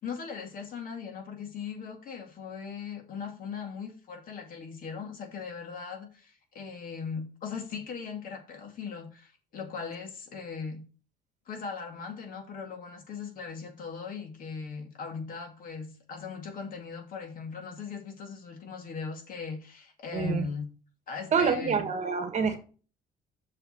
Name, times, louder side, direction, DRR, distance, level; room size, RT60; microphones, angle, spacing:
voice 1, 0.0-10.8 11.5-20.7 21.1-21.9, left 5 dB, 55° left, 2.4 m, -39 dB
voice 2, 20.1-20.5 21.3-22.6, right 6 dB, 45° right, 1.4 m, -27 dB
6.7 x 4.8 x 5.7 m
cardioid pair, 110°, 17 cm